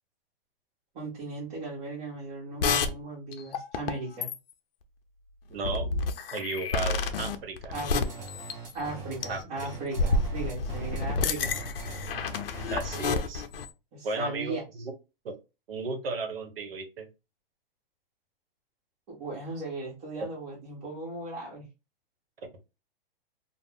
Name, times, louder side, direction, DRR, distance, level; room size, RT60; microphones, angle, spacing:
voice 1, 0.9-4.3 7.7-8.1 8.7-11.6 13.9-14.9 19.1-21.7, right 2 dB, 40° right, 1.1 m, -37 dB
sound 1, 2.6-2.9 3.3-4.5 5.6-8.9 9.2-9.4 9.9-13.7, left 4 dB, 75° left, 0.5 m, -29 dB
voice 2, 5.5-5.9 6.3-7.7 9.3-9.4 12.7-13.4 14.0-14.9 15.2-15.4 15.7-17.1, right 3 dB, 75° right, 0.8 m, -34 dB
sound 2, 7.7-13.3, right 3 dB, 25° right, 0.8 m, -42 dB
2.5 x 2.0 x 3.4 m
hypercardioid pair, 135°, 29 cm